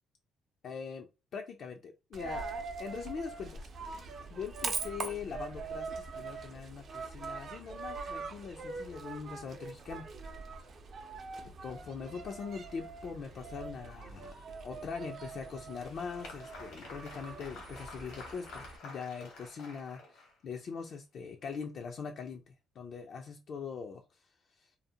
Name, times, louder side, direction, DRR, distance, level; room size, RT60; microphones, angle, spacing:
voice 1, 0.6-2.5 2.8-10.1 11.6-24.3 24.6-24.7, left 6 dB, 55° left, 3 dB, 0.4 m, -42 dB
Coin (dropping), 2.1-18.8, right 4 dB, 50° right, 0.5 m, -43 dB
Applause, 15.2-20.6, left 3 dB, 90° left, 1.2 m, -50 dB
2.5 x 2.0 x 2.7 m, 0.28 s
cardioid pair, 100°, 0 cm